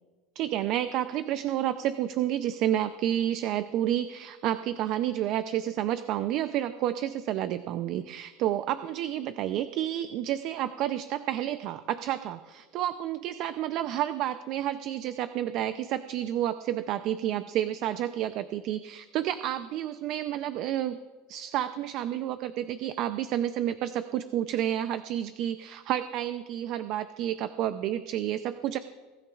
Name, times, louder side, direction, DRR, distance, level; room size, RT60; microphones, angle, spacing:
voice 1, 0.4-21.0 21.3-28.8, right 12 dB, 50° right, 12 dB, 0.5 m, -30 dB
23.0 x 14.0 x 2.4 m, 1.4 s
supercardioid pair, 130°, 0 cm